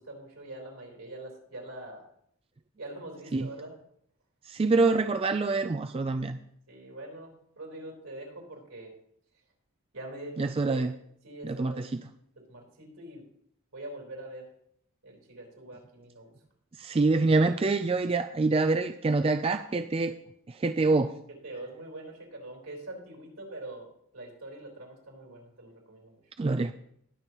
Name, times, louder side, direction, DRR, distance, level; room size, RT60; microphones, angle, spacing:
voice 1, 0.0-2.1 2.8-3.7 6.7-8.9 9.9-10.8 11.2-11.8 12.4-13.2 13.7-14.5 15.0-16.3 21.4-26.2, right 1 dB, 75° right, -1 dB, 3.9 m, -44 dB
voice 2, 4.5-6.4 10.4-10.9 11.4-12.0 16.8-20.1 20.5-21.1 26.4-26.7, right 3 dB, 25° right, 8 dB, 0.3 m, -26 dB
20.0 x 7.0 x 3.0 m, 0.69 s
head